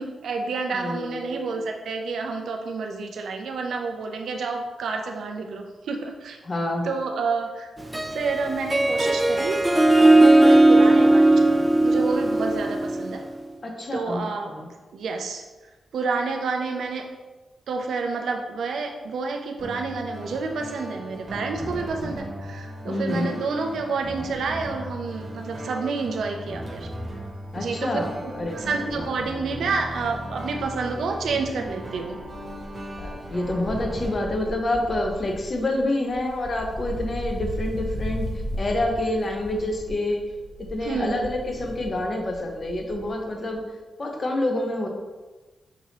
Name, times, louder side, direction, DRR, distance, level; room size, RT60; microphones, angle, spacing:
voice 1, 0.0-6.4 6.8-7.7 8.1-13.2 13.9-14.5 14.9-15.4 15.9-17.0 17.7-26.9 27.6-32.2 40.8-41.3, right 4 dB, 80° right, 3 dB, 0.5 m, -29 dB
voice 2, 0.7-1.5 6.4-6.8 13.6-14.6 22.9-23.4 27.5-28.6 33.0-38.3 38.6-40.2 40.6-43.6 44.0-44.9, left 1 dB, 40° left, 2 dB, 0.8 m, -27 dB
Harp, 7.8-13.3, right 2 dB, 15° right, 0.4 m, -18 dB
sound 1, 19.6-34.2, equal, 40° right, 1.0 m, -37 dB
Wind, 27.3-30.8 31.1-43.3 43.5-43.6, equal, 60° left, 1.1 m, -37 dB
6.0 x 2.8 x 3.0 m, 1.2 s
cardioid pair, 85°, 0 cm